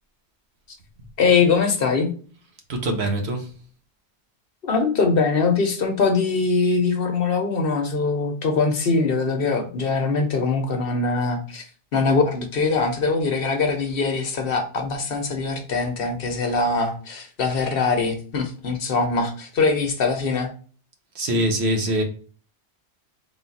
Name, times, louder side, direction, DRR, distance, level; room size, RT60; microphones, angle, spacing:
voice 1, 1.2-2.1 4.6-11.7 11.9-20.5, left 4 dB, 60° left, 0.9 m, -22 dB
voice 2, 2.7-3.5 21.1-22.0, right 1 dB, 70° right, 1.1 m, -23 dB
3.7 x 2.4 x 4.0 m
omnidirectional pair, 1.2 m